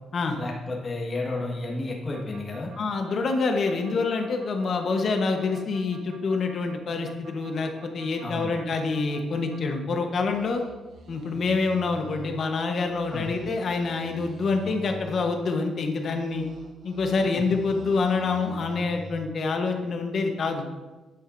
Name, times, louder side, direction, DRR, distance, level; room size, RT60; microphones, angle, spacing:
voice 1, 0.4-2.7 8.2-8.6 13.1-13.3 17.3-17.4, left 2 dB, 30° left, -2 dB, 1.6 m, -32 dB
sound 1, 2.1-9.8 10.1-12.3 12.8-15.3 15.8-19.2, right 2 dB, 60° right, 1.3 m, -46 dB
voice 2, 2.8-10.6 11.1-16.4 16.8-20.6, left 4 dB, 50° left, 4 dB, 1.1 m, -26 dB
9.7 x 7.9 x 2.6 m, 1.2 s
cardioid pair, 135°, 0 cm